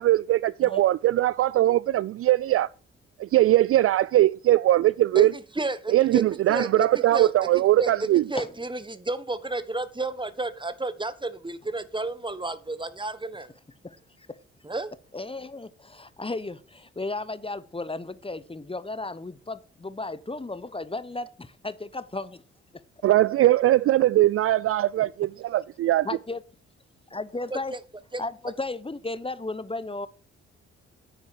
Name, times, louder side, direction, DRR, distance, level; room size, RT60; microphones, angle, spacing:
voice 1, 0.0-2.7 3.2-5.3 5.9-8.2 23.0-26.1, right 14 dB, 45° right, 0.4 m, -21 dB
voice 2, 5.1-13.5 14.6-14.9 27.5-27.8 28.1-28.2, right 2 dB, 15° right, 1.5 m, -32 dB
voice 3, 15.1-22.4 26.0-26.4 27.1-27.8 28.2-30.1, left 2 dB, 15° left, 1.0 m, -34 dB
9.7 x 9.3 x 4.8 m
hypercardioid pair, 40°, 32 cm